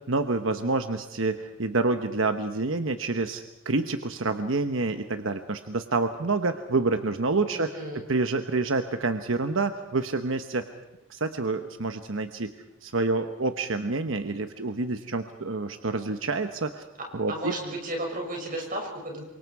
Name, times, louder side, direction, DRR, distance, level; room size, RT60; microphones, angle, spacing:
voice 1, 0.0-7.7 8.1-10.6 11.1-12.5 12.8-16.8 17.1-17.5, right 3 dB, 85° right, 8 dB, 1.1 m, -28 dB
voice 2, 7.5-8.0 17.3-19.2, right 1 dB, 45° right, 1 dB, 6.3 m, -33 dB
28.0 x 24.5 x 4.8 m, 1.0 s
head